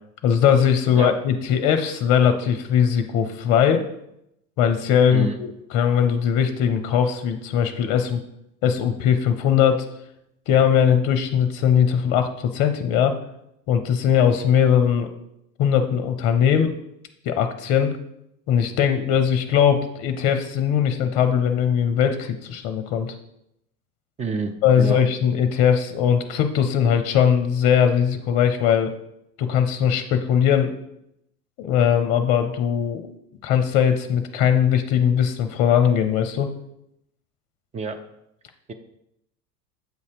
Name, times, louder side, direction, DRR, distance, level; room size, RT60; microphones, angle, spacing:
voice 1, 0.2-3.8 4.6-5.5 5.7-8.2 8.6-9.9 10.5-13.2 13.7-15.1 15.6-16.7 17.3-18.0 18.5-23.1 24.6-28.9 29.4-30.7 31.6-33.1 33.4-36.5, left 8 dB, 45° left, 8 dB, 0.7 m, -20 dB
voice 2, 24.2-25.0 37.7-38.0, right 4 dB, 15° right, 6 dB, 0.4 m, -28 dB
7.9 x 2.7 x 4.9 m, 0.81 s
hypercardioid pair, 80°, 47 cm